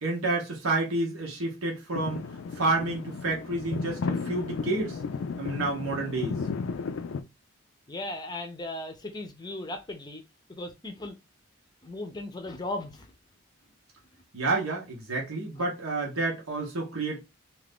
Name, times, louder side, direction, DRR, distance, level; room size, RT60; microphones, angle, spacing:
voice 1, 0.0-2.2 2.5-5.0 5.4-6.4 14.3-17.2, right 2 dB, 85° right, 1.0 m, -29 dB
sound 1, 1.9-7.2, left 4 dB, 70° left, 0.3 m, -34 dB
voice 2, 7.9-10.2 10.5-11.1 11.8-13.1 15.6-15.7, left 2 dB, 20° left, 0.5 m, -37 dB
2.7 x 2.5 x 3.5 m
head